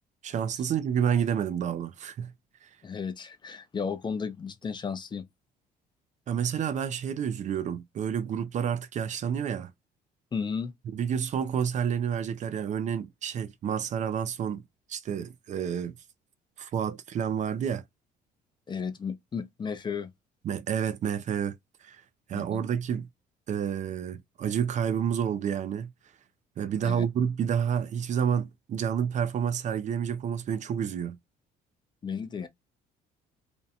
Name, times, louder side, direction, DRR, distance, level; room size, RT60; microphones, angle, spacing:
voice 1, 0.2-2.3 2.6-2.7 6.3-9.7 10.9-14.6 14.9-15.9 16.6-17.8 20.4-21.5 21.8-22.0 22.3-23.1 23.5-25.9 26.6-31.2, right 8 dB, 45° right, 0.4 m, -29 dB
voice 2, 2.8-5.3 10.3-10.7 18.7-20.1 22.3-22.6 26.8-27.0 32.0-32.5, left 6 dB, 25° left, 0.5 m, -34 dB
2.5 x 2.1 x 2.7 m
cardioid pair, 110°, 17 cm